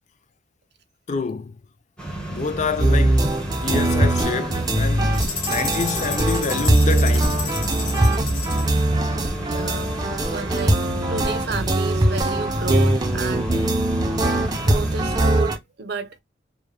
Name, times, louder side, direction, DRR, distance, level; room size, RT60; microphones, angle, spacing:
voice 1, 1.1-1.6 2.3-3.3 3.6-5.2 5.4-7.5, left 4 dB, 40° left, 0.4 m, -27 dB
sound 1, 2.0-15.4, right 1 dB, 5° left, 0.9 m, -32 dB
sound 2, 2.8-15.6, right 1 dB, 20° right, 0.5 m, -21 dB
sound 3, 5.1-8.8, left 5 dB, 85° left, 1.0 m, -31 dB
voice 2, 9.4-10.8 11.1-13.5 14.6-16.2, right 4 dB, 60° right, 0.6 m, -31 dB
3.2 x 2.2 x 2.3 m
head